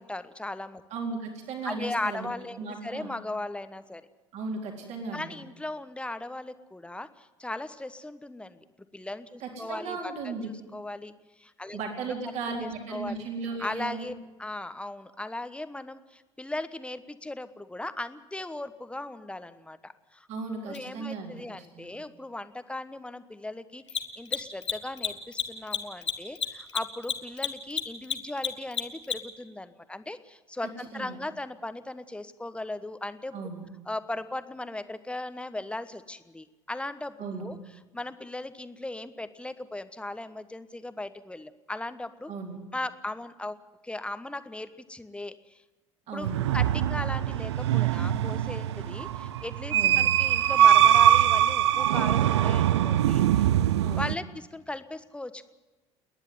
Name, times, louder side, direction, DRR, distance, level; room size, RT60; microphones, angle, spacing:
voice 1, 0.0-0.8 1.6-4.0 5.1-8.6 8.9-11.8 12.6-13.3 13.6-14.1 14.4-20.3 20.6-33.4 33.8-37.6 37.9-42.3 42.7-43.6 43.8-45.6 46.1-53.5 54.0-55.5, left 2 dB, 5° left, 12 dB, 1.2 m, -38 dB
voice 2, 0.9-2.3 2.6-3.1 4.3-5.4 9.4-10.5 11.7-14.1 20.3-21.4 21.7-21.9 30.9-31.2 33.3-33.7 37.2-37.5 42.3-42.6 46.1-46.4 49.7-50.1 53.8-54.1, right 4 dB, 50° right, 1 dB, 4.0 m, -36 dB
Mechanisms, 20.7-20.8 23.8-29.4, left 7 dB, 80° left, 1.4 m, -30 dB
sound 1, 46.2-54.1, right 11 dB, 70° right, 0.6 m, -22 dB
29.0 x 10.5 x 9.5 m, 1.2 s
figure-of-eight pair, 60°, 15 cm